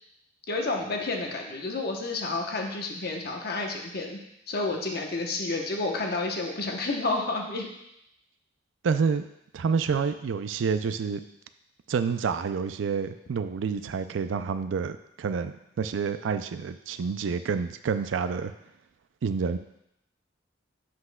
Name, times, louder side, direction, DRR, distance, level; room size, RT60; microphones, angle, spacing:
voice 1, 0.5-4.2 4.5-7.7, left 3 dB, 55° left, 2 dB, 0.9 m, -30 dB
voice 2, 8.8-9.2 9.5-11.2 11.9-18.5 19.2-19.6, right 5 dB, 80° right, 10 dB, 0.4 m, -28 dB
7.6 x 5.9 x 2.2 m, 0.80 s
head